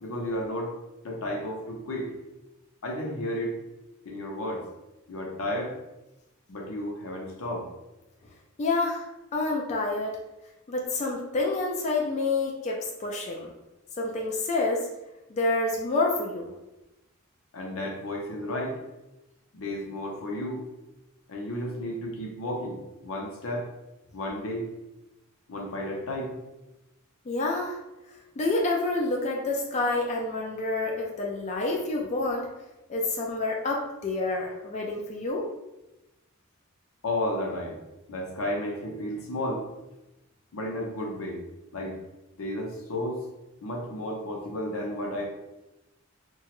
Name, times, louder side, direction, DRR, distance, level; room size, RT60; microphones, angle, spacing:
voice 1, 0.0-0.8 1.0-2.1 2.8-3.6 4.1-4.7 5.1-5.8 6.5-7.7 17.5-18.8 19.5-20.6 21.3-23.7 24.1-24.7 25.5-26.4 37.0-37.8 38.1-39.7 40.5-41.4 41.7-42.0 42.4-43.2 43.6-45.3, left 1 dB, 80° left, 0 dB, 0.6 m, -32 dB
voice 2, 8.6-9.1 9.3-10.2 10.7-13.5 14.0-14.9 15.3-16.5 27.3-27.8 28.4-32.5 32.9-35.5, left 2 dB, 35° left, -1 dB, 0.3 m, -28 dB
2.8 x 2.3 x 2.9 m, 0.97 s
head